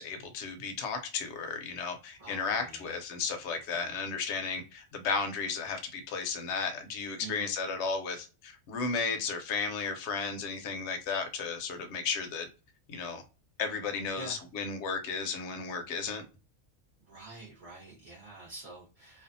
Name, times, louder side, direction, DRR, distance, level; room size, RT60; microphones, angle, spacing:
voice 1, 0.0-12.5 12.9-13.2 13.6-16.2, left 5 dB, 65° left, 0.8 m, -34 dB
voice 2, 2.2-2.9 3.7-3.9 7.2-7.5 14.1-14.4 17.0-19.2, right 3 dB, 30° right, 0.9 m, -47 dB
2.5 x 2.3 x 2.6 m
omnidirectional pair, 1.4 m